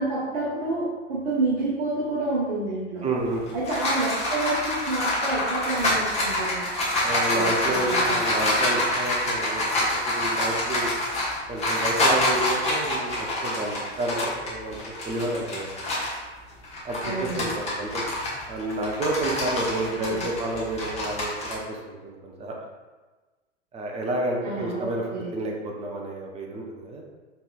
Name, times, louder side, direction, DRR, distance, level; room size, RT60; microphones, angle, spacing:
voice 1, 0.0-3.0 3.5-6.6 7.3-7.5 7.7-8.2 17.0-17.5 20.0-20.2 24.4-25.3, right 2 dB, 55° right, -7 dB, 1.1 m, -29 dB
voice 2, 3.0-3.4 7.0-10.9 11.5-15.7 16.8-18.1 18.5-22.6 23.7-27.0, right 2 dB, 15° right, 0 dB, 0.7 m, -30 dB
sound 1, 3.2-16.2 16.6-21.5, left 1 dB, 20° left, 1.2 m, -26 dB
5.3 x 3.1 x 2.4 m, 1.3 s
figure-of-eight pair, 90°, 36 cm